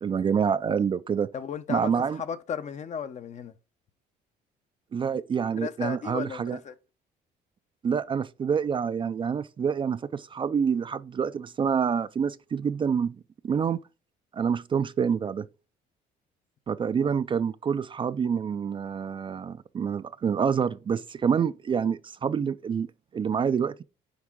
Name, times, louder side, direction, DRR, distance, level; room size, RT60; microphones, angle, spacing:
voice 1, 0.0-1.3 1.7-2.2 4.9-6.6 7.8-13.2 13.4-13.8 14.3-15.5 16.7-23.8, right 7 dB, 30° right, 0.4 m, -27 dB
voice 2, 1.3-3.5 5.6-6.7 17.0-17.1, left 7 dB, 45° left, 0.7 m, -35 dB
9.4 x 3.6 x 3.6 m
cardioid pair, 110°, 17 cm